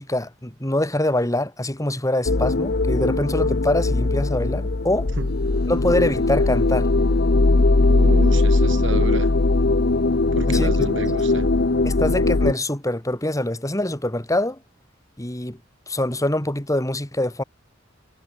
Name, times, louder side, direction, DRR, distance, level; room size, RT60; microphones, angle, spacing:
voice 1, 0.0-5.1 5.7-6.9 10.5-10.9 11.8-14.6 15.2-15.6 15.9-17.4, left 1 dB, 15° left, 3.7 m, -24 dB
sound 1, 2.3-12.5, left 2 dB, 55° left, 0.9 m, -19 dB
voice 2, 7.9-9.4 10.3-11.6, right 2 dB, 65° right, 4.9 m, -30 dB
head